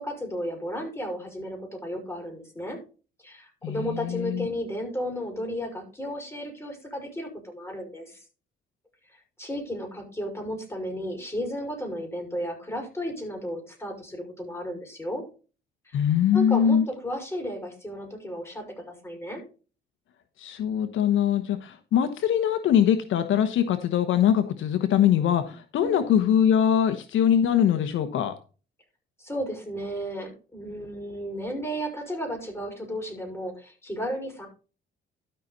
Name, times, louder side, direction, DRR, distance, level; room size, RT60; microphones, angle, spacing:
voice 1, 0.0-2.8 3.2-8.2 9.1-15.2 15.8-16.0 16.3-19.4 25.8-26.2 29.2-34.5, equal, 10° left, 5.8 m, -34 dB
voice 2, 3.6-4.5 15.9-16.8 20.4-28.3, left 9 dB, 80° left, 1.2 m, -22 dB
13.0 x 5.8 x 4.1 m
cardioid pair, 90°, 20 cm